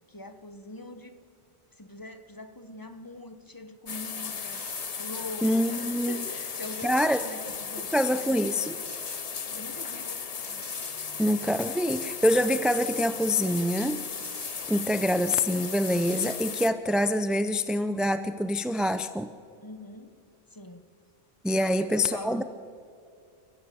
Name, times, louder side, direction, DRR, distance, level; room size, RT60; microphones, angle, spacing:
voice 1, 0.1-1.2 1.7-8.4 9.5-10.3 19.6-20.2 20.5-20.8 21.5-22.4, left 1 dB, 20° left, 9 dB, 1.1 m, -42 dB
sound 1, 3.9-16.7, left 6 dB, 40° left, 0.7 m, -36 dB
sound 2, 4.4-16.6, right 1 dB, 20° right, 2.3 m, -49 dB
voice 2, 5.4-6.2 6.8-7.2 7.9-8.8 11.2-14.0 14.7-19.3 21.4-22.4, left 1 dB, ahead, 11 dB, 0.4 m, -25 dB
29.0 x 15.0 x 7.7 m, 2.5 s
omnidirectional pair, 1.1 m